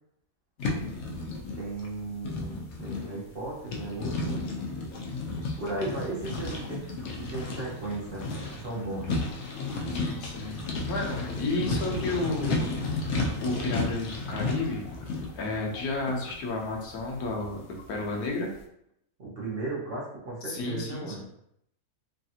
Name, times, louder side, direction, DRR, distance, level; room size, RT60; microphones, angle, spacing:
water on glass, 0.6-18.2, left 3 dB, 60° left, 0.8 m, -33 dB
voice 1, 1.5-4.5 5.6-6.9 7.2-9.2 11.6-12.2 19.2-21.3, right 2 dB, 50° right, -5 dB, 0.8 m, -36 dB
voice 2, 5.3-5.7 9.9-12.7 13.0-14.9 15.4-18.5 20.4-21.2, left 2 dB, 80° left, 0 dB, 1.2 m, -32 dB
3.3 x 2.3 x 2.7 m, 0.74 s
omnidirectional pair, 1.6 m